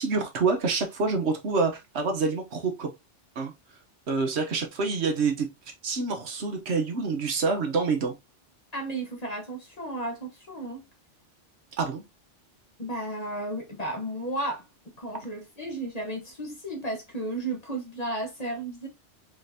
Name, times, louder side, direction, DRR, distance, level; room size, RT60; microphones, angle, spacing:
voice 1, 0.0-2.9 3.4-3.5 4.1-5.5 5.8-8.2 11.8-12.0, right 4 dB, 70° right, 1.2 m, -27 dB
voice 2, 8.7-10.8 12.8-14.6 15.0-18.9, right 1 dB, 35° left, 1.1 m, -33 dB
4.0 x 3.7 x 2.7 m
omnidirectional pair, 1.2 m